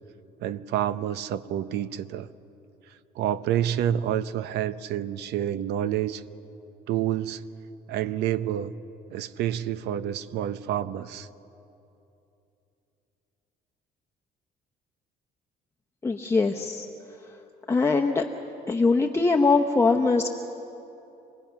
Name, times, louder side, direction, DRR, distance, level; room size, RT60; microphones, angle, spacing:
voice 1, 0.4-2.3 3.2-6.2 6.9-7.4 7.9-8.7 9.1-11.3, right 11 dB, 80° right, 14 dB, 0.7 m, -28 dB
voice 2, 16.0-16.9 17.7-18.3 18.7-20.3, left 3 dB, 15° left, 1 dB, 0.9 m, -22 dB
27.0 x 19.5 x 5.9 m, 2.9 s
cardioid pair, 110°, 17 cm